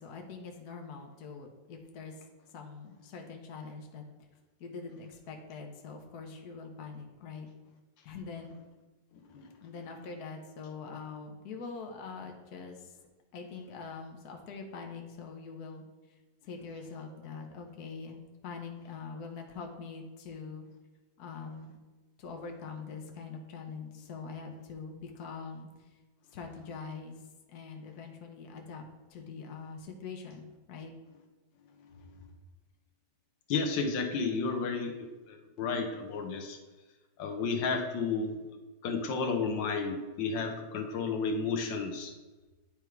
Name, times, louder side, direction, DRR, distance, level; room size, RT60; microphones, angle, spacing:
voice 1, 0.0-2.1 2.5-4.0 4.6-7.5 8.0-8.5 9.6-12.9 13.3-15.8 16.4-20.6 21.2-21.8 22.2-25.9 26.3-27.2 27.5-28.8 29.1-30.9, left 5 dB, 65° left, 3 dB, 1.4 m, -43 dB
voice 2, 33.5-36.6 37.2-38.4 38.8-42.1, left 4 dB, 85° left, 4 dB, 1.5 m, -32 dB
10.0 x 3.5 x 4.6 m, 1.2 s
omnidirectional pair, 1.9 m